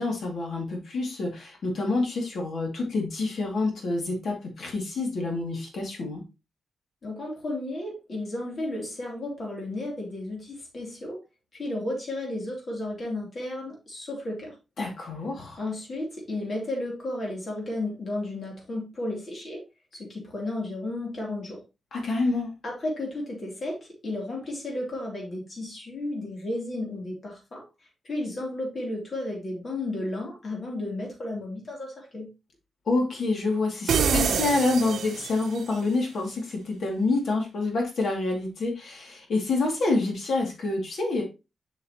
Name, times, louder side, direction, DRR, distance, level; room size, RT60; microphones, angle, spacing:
voice 1, 0.0-6.2 14.8-15.6 21.9-22.5 32.9-41.2, left 3 dB, 60° left, 1 dB, 2.5 m, -27 dB
voice 2, 7.0-11.2 11.5-14.5 15.6-19.6 19.9-21.6 22.6-27.6 28.0-32.3, left 1 dB, 35° left, -1 dB, 3.1 m, -33 dB
sound 1, 33.9-35.7, right 7 dB, 90° right, 0.7 m, -26 dB
7.2 x 6.4 x 3.0 m, 0.27 s
wide cardioid pair, 180°, 0 cm